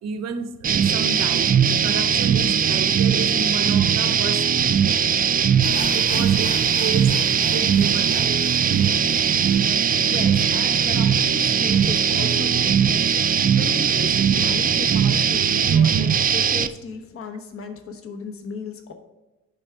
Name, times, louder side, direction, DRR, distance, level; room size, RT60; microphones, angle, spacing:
voice 1, 0.0-4.6 4.8-8.4, right 5 dB, 60° right, 0.7 m, -32 dB
sound 1, 0.6-16.7, right 7 dB, 30° right, 0.4 m, -19 dB
sound 2, 5.6-11.5 11.8-11.9 12.1-12.2 12.8-12.9, left 1 dB, 25° left, 1.4 m, -38 dB
voice 2, 10.0-18.9, left 4 dB, 45° left, 1.1 m, -35 dB
10.5 x 3.7 x 4.5 m
cardioid pair, 90°, 30 cm